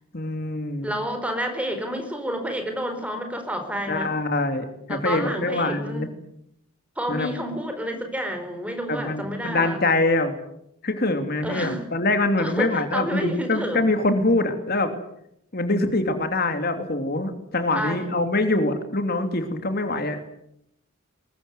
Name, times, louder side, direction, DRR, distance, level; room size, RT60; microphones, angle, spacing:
voice 1, 0.1-0.9 3.9-6.1 7.1-7.3 8.9-10.3 10.8-14.9 15.5-20.2, left 2 dB, 50° left, 7 dB, 3.0 m, -24 dB
voice 2, 0.8-4.1 4.9-6.1 7.0-9.8 11.4-11.8 12.4-13.9 17.7-18.1, equal, 5° right, 6 dB, 4.3 m, -29 dB
22.5 x 21.5 x 9.5 m, 0.78 s
head